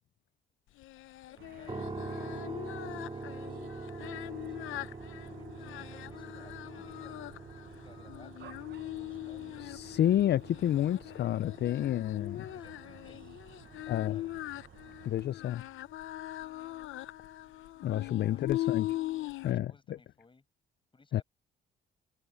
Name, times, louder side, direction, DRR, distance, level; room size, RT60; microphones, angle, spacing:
Singing, 0.8-19.5, left 16 dB, 85° left, 0.8 m, -41 dB
voice 1, 1.3-8.3 8.8-9.4 12.5-14.3 18.0-18.8 19.4-20.4 20.9-21.2, left 3 dB, 25° left, 7.8 m, -61 dB
sound 1, 1.4-15.3, right 11 dB, 60° right, 0.9 m, -55 dB
sound 2, 1.7-15.7, right 3 dB, 25° right, 2.3 m, -45 dB
voice 2, 9.6-12.4 13.9-14.2 15.0-15.6 17.8-18.9 19.4-20.0 21.1-21.2, left 12 dB, 55° left, 0.5 m, -29 dB
cardioid pair, 90°, 20 cm